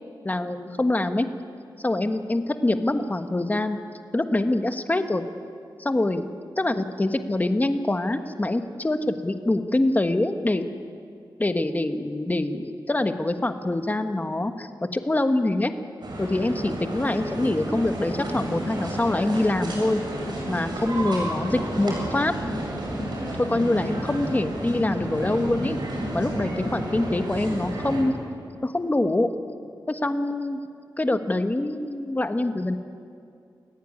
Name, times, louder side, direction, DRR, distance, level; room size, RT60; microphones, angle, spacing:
voice 1, 0.2-1.3 1.8-3.8 4.1-5.2 5.8-6.3 6.6-10.7 11.4-15.7 16.2-20.0 20.5-22.3 23.4-25.8 26.1-28.1 28.6-29.3 29.9-30.6 31.0-32.8, left 2 dB, 20° left, 7 dB, 1.4 m, -25 dB
sound 1, 16.0-28.0, right 1 dB, 65° right, 7.5 m, -31 dB
28.5 x 15.0 x 9.8 m, 2.3 s
wide cardioid pair, 100°, 8 cm